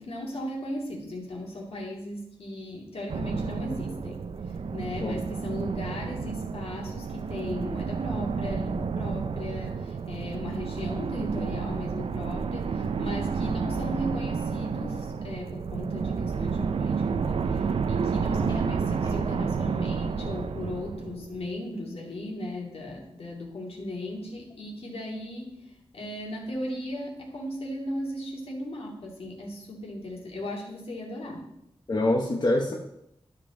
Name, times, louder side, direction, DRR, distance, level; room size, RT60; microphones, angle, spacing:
voice 1, 0.0-31.5, left 1 dB, 70° left, -1 dB, 2.4 m, -37 dB
sound 1, 3.1-21.5, right 5 dB, 65° right, 0.5 m, -30 dB
voice 2, 31.9-32.7, left 1 dB, 45° left, -1 dB, 1.0 m, -25 dB
12.0 x 5.3 x 3.8 m, 0.81 s
wide cardioid pair, 75°, 10 cm